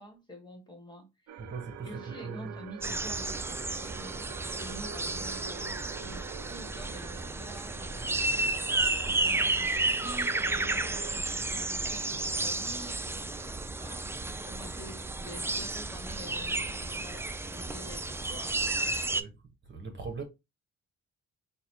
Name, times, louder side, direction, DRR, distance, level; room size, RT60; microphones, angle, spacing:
voice 1, 0.0-1.4 1.8-18.6, equal, 15° left, 1.6 m, -48 dB
sound 1, 1.3-11.2, right 9 dB, 65° right, 0.6 m, -46 dB
voice 2, 1.5-2.5 19.1-19.3 19.7-20.2, right 5 dB, 35° right, 1.0 m, -39 dB
sound 2, 2.8-19.2, right 2 dB, 10° right, 0.3 m, -32 dB
4.1 x 2.2 x 4.3 m
cardioid pair, 90°, 30 cm